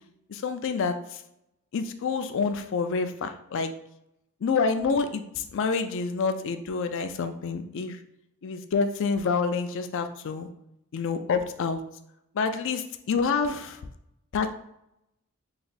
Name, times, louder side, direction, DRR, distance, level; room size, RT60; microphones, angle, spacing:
voice 1, 0.3-1.2 1.7-3.7 4.4-8.0 8.4-10.5 10.9-11.8 12.3-13.8 14.3-14.5, left 5 dB, 60° left, 9 dB, 0.4 m, -28 dB
3.2 x 2.6 x 4.0 m, 0.81 s
head